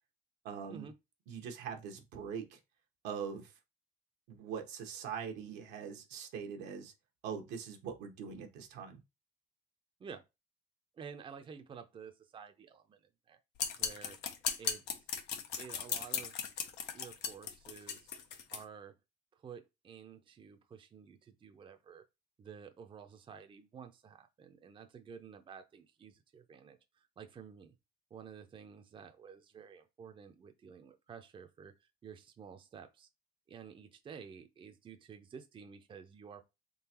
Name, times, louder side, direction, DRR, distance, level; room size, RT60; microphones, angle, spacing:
voice 1, 0.4-0.9 1.3-2.6 3.0-3.5 4.3-6.9 7.2-9.0, right 7 dB, 90° right, 1.0 m, -42 dB
voice 2, 10.9-13.0 13.3-13.4 13.8-14.2 14.6-15.1 15.6-16.4 16.9-18.1 18.5-18.9 19.4-22.0 22.4-27.7 28.1-33.1 33.5-36.4, right 6 dB, 30° right, 0.5 m, -51 dB
sound 1, 13.6-18.6, left 7 dB, 80° left, 0.7 m, -37 dB
3.8 x 3.2 x 2.9 m
cardioid pair, 110°, 17 cm